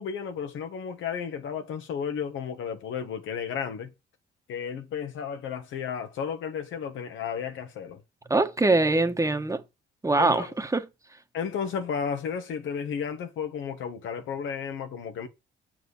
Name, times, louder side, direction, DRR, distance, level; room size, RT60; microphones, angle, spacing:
voice 1, 0.0-3.9 4.5-8.0 10.2-10.5 11.3-15.3, left 7 dB, 80° left, 1.6 m, -33 dB
voice 2, 8.3-9.6 10.0-10.8, right 2 dB, 15° right, 1.3 m, -23 dB
8.2 x 4.6 x 7.0 m
cardioid pair, 90°, 20 cm